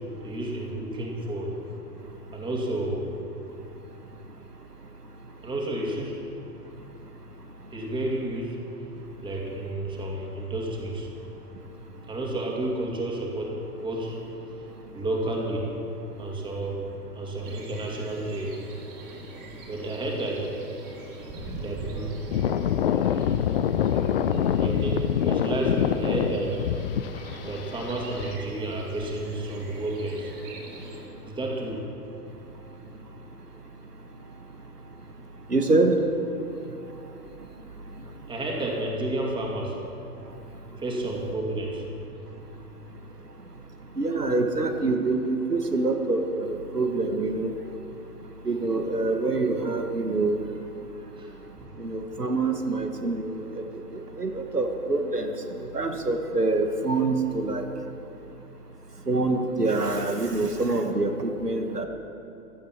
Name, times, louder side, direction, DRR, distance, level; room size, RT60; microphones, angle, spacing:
voice 1, 0.2-1.5 2.3-3.1 5.4-6.2 7.7-8.6 9.2-11.1 12.1-14.2 14.9-15.7 16.2-16.8 17.1-18.6 19.7-20.5 21.6-22.2 24.6-26.6 27.4-30.3 31.3-31.9 38.3-39.8 40.8-41.8 50.9-51.3 51.6-51.7, right 1 dB, 10° right, -1 dB, 2.3 m, -31 dB
sound 1, 17.4-31.1, right 2 dB, 30° right, 3.2 m, -43 dB
sound 2, 22.3-28.3, left 9 dB, 40° left, 0.5 m, -25 dB
voice 2, 35.5-36.0 44.0-47.5 48.4-50.4 51.8-53.6 53.9-55.3 55.6-57.6 59.1-61.9, right 3 dB, 85° right, 5 dB, 1.3 m, -25 dB
16.0 x 12.0 x 5.8 m, 2.9 s
figure-of-eight pair, 105°, 46 cm